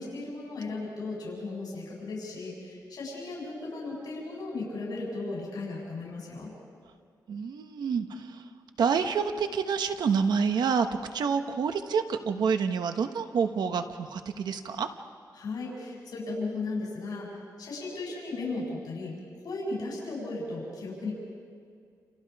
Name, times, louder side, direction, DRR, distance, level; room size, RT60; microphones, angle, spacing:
voice 1, 0.0-6.5 8.1-8.2 15.3-17.3 17.6-21.1, left 3 dB, 70° left, -3 dB, 7.5 m, -36 dB
voice 2, 7.3-8.2 8.8-10.9 11.1-14.9, right 6 dB, 80° right, 7 dB, 1.3 m, -27 dB
29.5 x 29.0 x 4.9 m, 2.3 s
wide cardioid pair, 145°, 7 cm